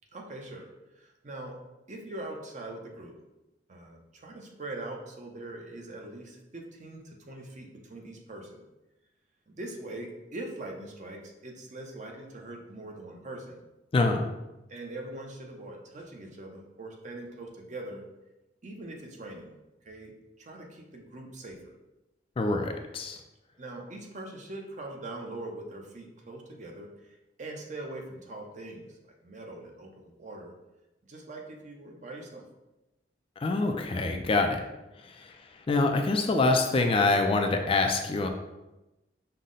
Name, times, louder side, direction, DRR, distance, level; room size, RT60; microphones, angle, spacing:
voice 1, 0.1-1.6 1.9-3.2 3.7-8.7 9.5-13.6 14.7-18.0 18.6-19.5 19.8-21.6 23.6-30.5 31.0-32.4, right 2 dB, 45° right, 1 dB, 0.7 m, -42 dB
voice 2, 22.4-23.2 33.4-34.6 35.0-35.3 35.7-38.3, left 3 dB, 30° left, 4 dB, 0.3 m, -25 dB
5.4 x 2.1 x 3.8 m, 0.99 s
head